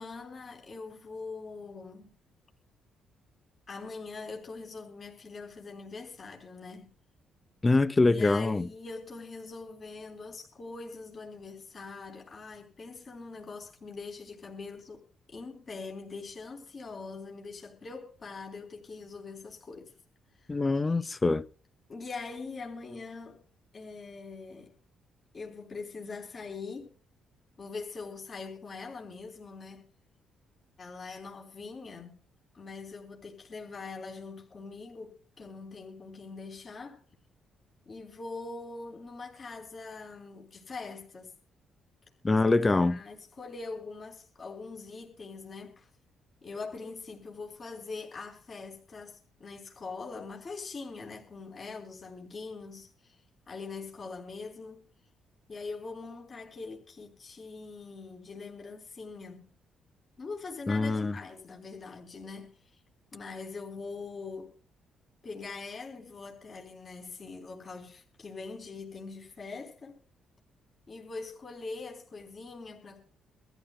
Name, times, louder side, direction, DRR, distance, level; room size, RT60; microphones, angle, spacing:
voice 1, 0.0-2.1 3.7-7.0 8.0-15.0 15.3-20.0 20.4-21.1 21.9-23.4 23.7-24.7 25.3-26.9 27.6-29.8 30.8-32.2 32.5-37.0 37.9-41.3 42.8-45.9 46.4-53.2 53.5-54.8 55.5-59.5 60.2-62.8 63.1-64.5 65.2-70.0 70.9-73.0, left 4 dB, 40° left, 3.8 m, -43 dB
voice 2, 7.6-8.7 20.5-21.4 42.2-43.0 60.7-61.1, left 3 dB, 25° left, 0.7 m, -24 dB
24.0 x 14.0 x 2.2 m
cardioid pair, 90°, 0 cm